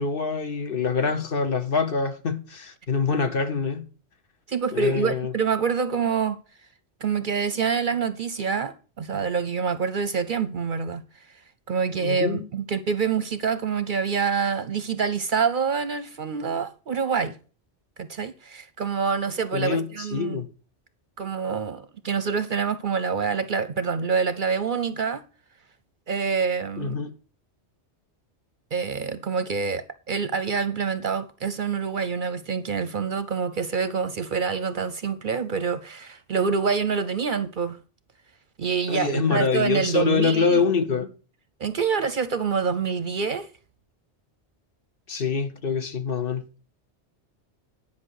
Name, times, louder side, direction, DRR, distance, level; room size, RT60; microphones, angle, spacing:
voice 1, 0.0-3.9 4.7-5.3 12.0-12.5 19.5-20.5 26.8-27.1 38.9-41.1 45.1-46.5, left 5 dB, 55° left, 1.1 m, -25 dB
voice 2, 4.5-6.4 7.0-11.0 11.7-17.3 18.0-20.4 21.2-25.2 26.1-27.0 28.7-37.8 38.6-40.6 41.6-43.5, right 6 dB, 55° right, 0.7 m, -26 dB
10.5 x 5.5 x 6.4 m
omnidirectional pair, 1.2 m